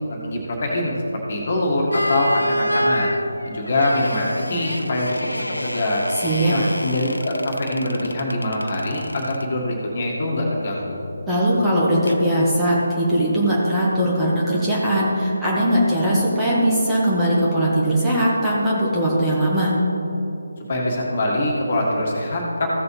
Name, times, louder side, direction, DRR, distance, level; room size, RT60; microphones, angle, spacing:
voice 1, 0.1-3.1 3.5-5.3 5.6-6.1 6.5-11.0 20.7-22.7, left 1 dB, 40° left, -2 dB, 1.9 m, -23 dB
sound 1, 1.9-9.5 12.1-12.3, equal, 80° left, 0.5 m, -28 dB
voice 2, 6.2-6.5 11.3-19.7, right 1 dB, 5° right, -9 dB, 1.7 m, -20 dB
15.5 x 6.8 x 3.3 m, 2.9 s
figure-of-eight pair, 150°, 0 cm